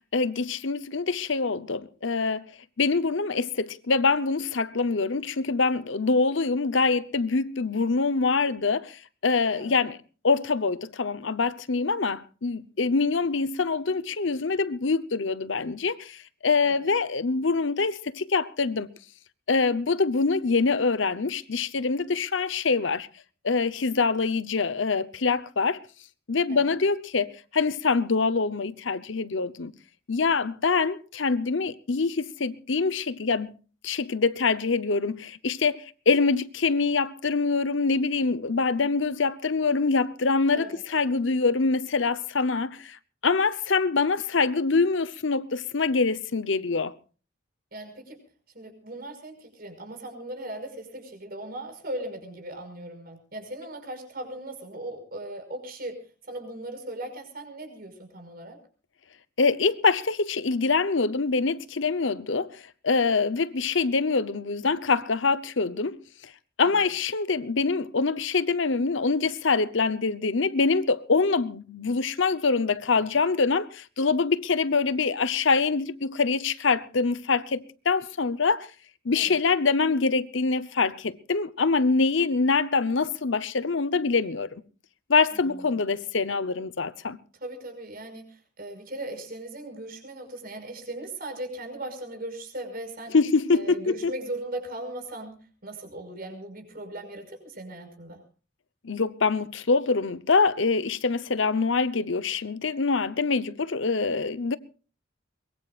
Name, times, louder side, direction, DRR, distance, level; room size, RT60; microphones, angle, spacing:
voice 1, 0.1-2.4 2.8-10.0 10.2-18.9 19.5-23.1 23.4-25.8 26.3-29.7 30.1-33.5 33.8-43.0 43.2-46.9 59.4-66.0 66.6-78.7 79.0-84.5 85.1-87.2 93.1-94.1 98.8-104.6, left 4 dB, 75° left, 0.9 m, -25 dB
voice 2, 47.7-48.2 48.5-56.0 56.2-58.6 66.6-66.8 79.1-79.4 85.3-85.4 87.4-88.3 88.6-93.2 93.5-95.3 95.6-98.2, right 1 dB, 50° right, 5.6 m, -38 dB
23.0 x 21.5 x 2.5 m
head